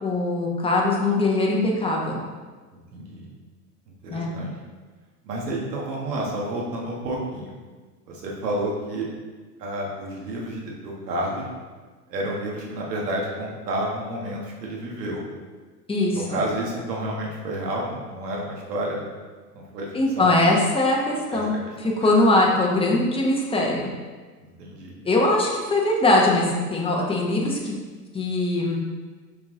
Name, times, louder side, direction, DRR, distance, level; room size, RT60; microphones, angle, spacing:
voice 1, 0.0-2.2 4.1-4.3 15.9-16.4 19.9-21.6 21.8-23.9 25.0-27.8 28.1-28.8, left 2 dB, 10° left, -2 dB, 1.2 m, -21 dB
voice 2, 2.7-3.3 4.0-4.5 5.2-7.5 8.1-9.1 9.6-11.5 12.1-15.2 16.1-19.0 19.5-19.9 20.2-20.3 21.3-21.4 21.8-21.9 24.4-25.0, right 1 dB, 70° right, -2 dB, 1.8 m, -30 dB
5.8 x 4.5 x 3.9 m, 1.4 s
hypercardioid pair, 100°, 49 cm